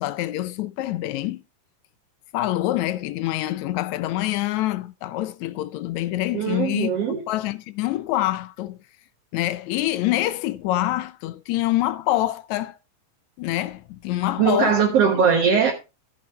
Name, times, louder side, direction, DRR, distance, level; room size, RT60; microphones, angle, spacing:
voice 1, 0.0-1.4 2.3-8.8 9.3-12.8 13.4-14.8, left 15 dB, 75° left, 2.0 m, -26 dB
voice 2, 6.3-7.2 14.4-15.7, right 6 dB, 60° right, 2.2 m, -20 dB
14.0 x 7.8 x 3.2 m
omnidirectional pair, 3.4 m